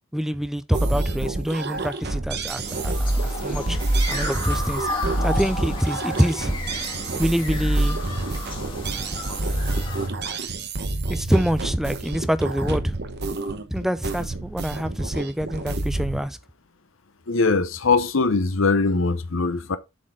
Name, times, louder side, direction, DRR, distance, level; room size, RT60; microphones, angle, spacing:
voice 1, 0.1-3.8 4.1-4.9 5.2-6.5 7.2-8.0 11.1-13.0 13.7-16.4, equal, ahead, 0.3 m, -25 dB
sound 1, 0.7-16.2, right 2 dB, 55° right, 1.0 m, -27 dB
sound 2, 2.6-10.1, left 2 dB, 25° left, 1.9 m, -33 dB
voice 2, 17.3-19.8, left 4 dB, 75° left, 0.8 m, -21 dB
7.4 x 4.3 x 4.8 m
head